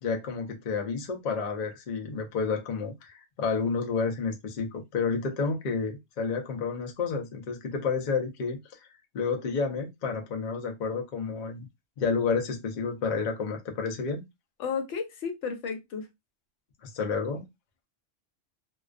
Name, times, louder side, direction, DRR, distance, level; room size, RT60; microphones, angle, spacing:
voice 1, 0.0-8.9 9.1-11.7 12.0-14.2 16.8-17.5, left 5 dB, 50° left, 0.6 m, -30 dB
voice 2, 14.6-16.1, left 6 dB, 85° left, 1.0 m, -33 dB
2.3 x 2.2 x 2.3 m
omnidirectional pair, 1.2 m